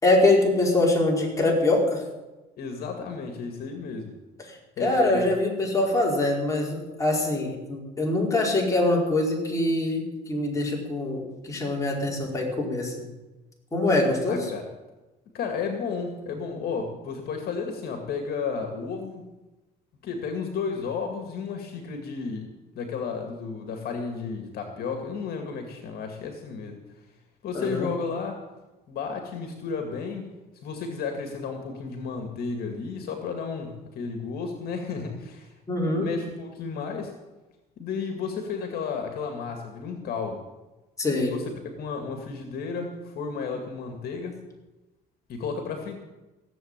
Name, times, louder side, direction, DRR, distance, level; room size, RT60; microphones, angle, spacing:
voice 1, 0.0-2.0 4.5-13.1 13.7-14.4 27.5-27.9 35.7-36.1 41.0-41.3, left 2 dB, 20° left, -2 dB, 4.8 m, -24 dB
voice 2, 2.6-4.1 4.8-5.3 14.3-14.6 15.3-19.2 20.0-22.5 22.8-26.8 27.4-28.4 28.9-30.3 30.6-37.1 37.8-40.4 41.1-44.4 45.3-46.0, left 5 dB, 65° left, 4 dB, 2.2 m, -33 dB
17.0 x 7.8 x 9.0 m, 1.1 s
cardioid pair, 110°, 17 cm